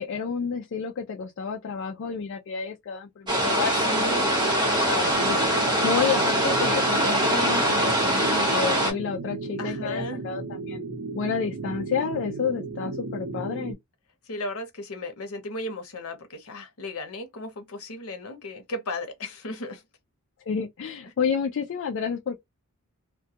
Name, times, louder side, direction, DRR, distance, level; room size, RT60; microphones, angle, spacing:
voice 1, 0.0-5.4 5.8-10.8 11.1-13.8 20.5-22.4, left 6 dB, 55° left, 0.3 m, -30 dB
sound 1, 3.3-8.9, right 1 dB, 20° right, 0.9 m, -23 dB
voice 2, 3.7-4.3 9.6-10.3 14.3-19.8 21.0-21.1, left 1 dB, 75° left, 0.8 m, -35 dB
sound 2, 5.1-13.7, right 3 dB, 75° right, 0.8 m, -35 dB
2.2 x 2.1 x 2.7 m
head